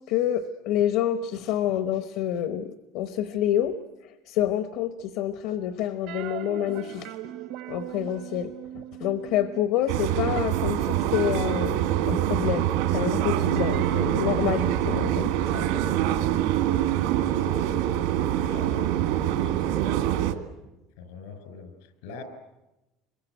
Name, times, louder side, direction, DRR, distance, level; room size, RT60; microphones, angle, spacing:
voice 1, 0.1-3.8 4.0-7.2 7.7-11.8 12.1-15.7, left 11 dB, 65° left, 10 dB, 1.0 m, -28 dB
sound 1, 6.1-9.8 10.1-17.9, right 11 dB, 60° right, 0.9 m, -40 dB
sound 2, 9.9-20.3, right 12 dB, 85° right, 2.1 m, -25 dB
voice 2, 17.1-17.7 18.4-19.7 21.0-22.2, left 4 dB, 85° left, 9 dB, 5.5 m, -44 dB
26.5 x 22.5 x 9.1 m, 0.99 s
cardioid pair, 175°, 0 cm